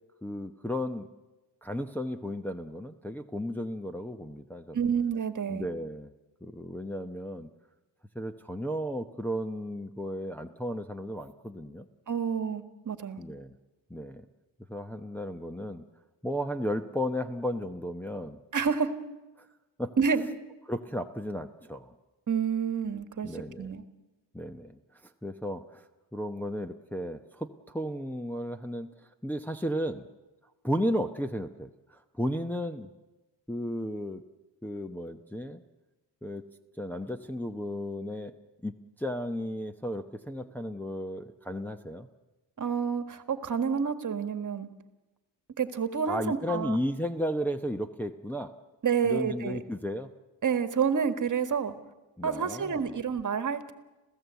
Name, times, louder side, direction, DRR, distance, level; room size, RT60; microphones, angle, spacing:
voice 1, 0.2-1.1 1.6-4.8 5.5-6.1 6.4-7.5 8.1-11.9 13.2-13.6 13.9-14.3 14.7-15.8 16.2-18.4 19.4-19.5 19.8-19.9 20.7-21.9 23.2-23.8 24.3-25.9 26.1-28.9 29.2-30.1 30.6-32.9 33.5-34.2 34.6-35.6 36.2-36.5 36.8-38.3 38.6-42.1 46.1-48.5 49.0-50.1 52.2-53.0, equal, 5° left, 3 dB, 0.9 m, -34 dB
voice 2, 4.7-5.7 12.1-13.2 18.5-18.9 20.0-20.3 22.3-23.3 23.6-23.8 42.6-44.7 45.6-46.8 48.8-49.6 50.4-51.8 52.2-53.7, right 6 dB, 40° right, 9 dB, 1.7 m, -29 dB
27.5 x 15.5 x 8.2 m, 1.1 s
cardioid pair, 100°, 44 cm